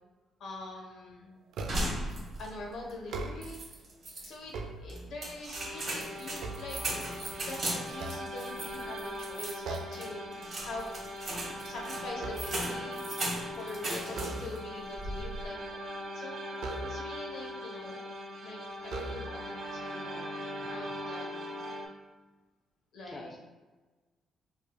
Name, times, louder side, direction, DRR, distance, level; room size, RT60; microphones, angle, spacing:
voice 1, 0.4-1.4 2.4-3.6 4.2-4.5 4.8-10.2 10.6-11.0 11.6-13.0 13.6-15.8 16.1-18.0 18.4-20.3 20.6-21.5 22.9-23.4, left 2 dB, 70° left, 0 dB, 0.9 m, -44 dB
sound 1, 1.5-2.1 3.0-3.7 4.3-5.4 5.9-7.4 7.9-8.9 9.6-10.1 10.5-10.8 11.1-12.9 14.1-14.9 16.6-17.3 18.1-18.2 18.8-19.6, right 3 dB, 85° right, 0.4 m, -41 dB
sound 2, 1.7-2.6 2.9-3.0 3.4-4.3 4.9-14.6 14.9-15.4, right 1 dB, 40° right, 1.2 m, -37 dB
sound 3, 5.5-21.9, equal, 65° right, 0.7 m, -41 dB
voice 2, 13.8-14.4 20.6-20.7 23.1-23.4, left 1 dB, 20° left, -1 dB, 0.4 m, -46 dB
4.8 x 2.5 x 2.2 m, 1.3 s
cardioid pair, 125°, 0 cm